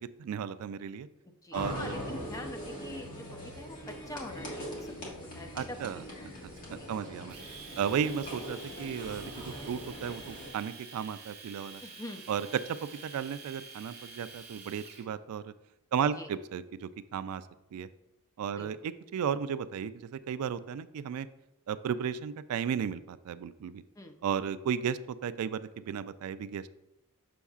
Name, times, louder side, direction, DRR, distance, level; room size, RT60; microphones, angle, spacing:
voice 1, 0.2-1.1 1.5-1.9 5.6-6.0 6.7-7.4 7.8-11.8 12.3-15.5 15.9-17.5 17.7-17.9 18.4-21.3 21.7-23.8 24.2-26.7, right 7 dB, 75° right, 15 dB, 0.3 m, -34 dB
voice 2, 1.4-5.8 6.1-6.3 6.6-6.9 11.8-12.3 16.2-16.3 18.6-18.9 24.0-24.2, left 1 dB, 15° left, 5 dB, 0.5 m, -45 dB
sound 1, 1.5-10.5, equal, 40° left, 1.5 m, -41 dB
Domestic sounds home sounds, 7.3-15.1, right 4 dB, 45° right, 0.9 m, -48 dB
6.9 x 6.2 x 2.4 m, 0.88 s
head